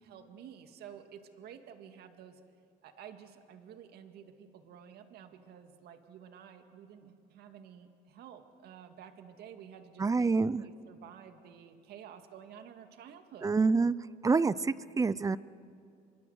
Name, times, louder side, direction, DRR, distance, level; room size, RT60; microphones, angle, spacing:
voice 1, 0.0-2.4 2.8-10.3 10.6-13.6, right 8 dB, 70° right, 7 dB, 2.1 m, -51 dB
voice 2, 10.0-10.6 13.4-13.9 14.2-15.4, right 4 dB, 20° right, 18 dB, 0.6 m, -27 dB
27.0 x 23.0 x 8.0 m, 2.4 s
cardioid pair, 110°, 17 cm